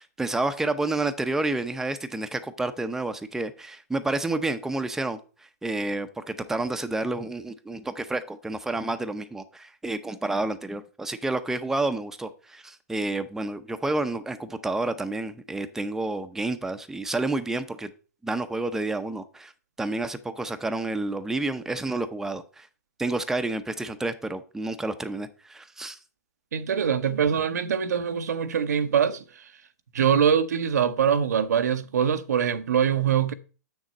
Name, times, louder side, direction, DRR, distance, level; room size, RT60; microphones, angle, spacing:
voice 1, 0.0-17.9 18.2-19.5 19.8-22.7 23.0-26.0, right 2 dB, 5° right, 0.7 m, -30 dB
voice 2, 26.5-29.2 29.9-33.3, right 8 dB, 80° right, 0.8 m, -23 dB
8.1 x 6.4 x 4.1 m
hypercardioid pair, 120°, 9 cm